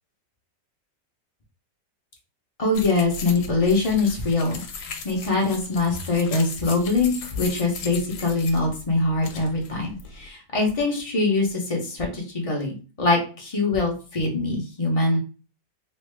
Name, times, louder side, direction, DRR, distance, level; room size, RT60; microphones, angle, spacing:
voice 1, 2.6-15.2, left 3 dB, 45° left, -1 dB, 0.4 m, -23 dB
sound 1, 2.7-10.3, left 5 dB, 70° left, 1.1 m, -38 dB
3.1 x 2.6 x 3.2 m, 0.35 s
omnidirectional pair, 1.9 m